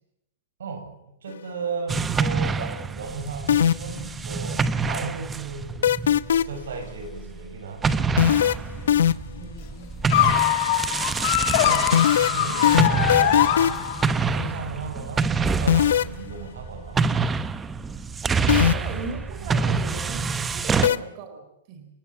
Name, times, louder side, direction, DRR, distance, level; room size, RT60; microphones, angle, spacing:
voice 1, 0.6-6.0 6.3-8.4 11.5-13.8 14.2-17.0 18.6-19.0 19.4-19.5, right 5 dB, 85° right, 6 dB, 7.6 m, -36 dB
sound 1, 1.9-7.5 7.8-20.9, right 5 dB, 10° right, 0.8 m, -27 dB
sound 2, 3.5-4.0 5.8-6.7 8.2-9.4 11.9-13.9 15.7-16.2 18.5-19.0 20.8-21.0, left 10 dB, 90° left, 0.9 m, -19 dB
voice 2, 9.4-10.1 18.4-21.9, right 4 dB, 35° right, 6 dB, 4.0 m, -38 dB
sound 3, 10.1-14.2, left 12 dB, 45° left, 2.5 m, -22 dB
28.5 x 16.5 x 7.4 m, 0.82 s
supercardioid pair, 170°, 0 cm